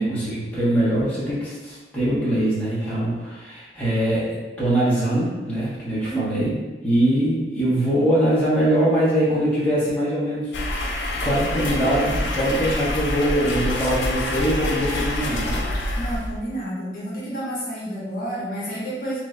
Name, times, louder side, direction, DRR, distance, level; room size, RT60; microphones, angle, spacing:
voice 1, 0.0-6.5 6.8-15.6, right 1 dB, 10° left, -11 dB, 1.2 m, -22 dB
voice 2, 6.0-6.5 15.9-19.2, right 1 dB, 50° left, -7 dB, 0.9 m, -29 dB
sound 1, 10.5-16.6, left 1 dB, 80° left, 0.6 m, -26 dB
3.9 x 3.1 x 2.4 m, 1.2 s
head